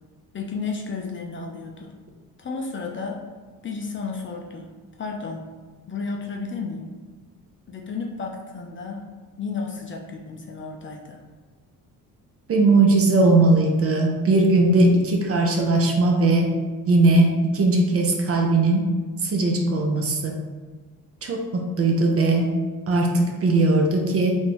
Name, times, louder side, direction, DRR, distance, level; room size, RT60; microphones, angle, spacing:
voice 1, 0.3-1.9 2.4-3.2 3.6-4.7 5.0-5.4 5.9-6.9 7.7-9.1 9.4-11.2, left 4 dB, 35° left, 0 dB, 0.4 m, -32 dB
voice 2, 12.5-16.5 16.9-18.9 19.2-20.3 21.2-22.5 22.9-24.4, right 2 dB, 40° right, 2 dB, 0.6 m, -19 dB
3.7 x 2.6 x 2.9 m, 1.4 s
cardioid pair, 105°, 37 cm